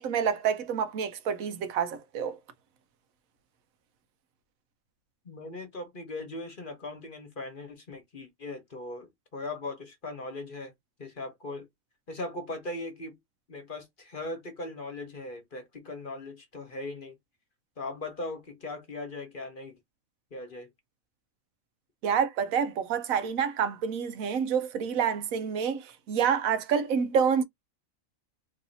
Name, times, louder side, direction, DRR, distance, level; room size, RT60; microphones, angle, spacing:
voice 1, 0.0-2.4 22.0-27.4, right 7 dB, 85° right, 1.1 m, -28 dB
voice 2, 5.2-10.7 11.0-11.7 12.1-13.2 13.5-17.1 17.8-19.8 20.3-20.7, left 2 dB, 40° left, 1.2 m, -39 dB
3.1 x 2.7 x 4.0 m
omnidirectional pair, 1.4 m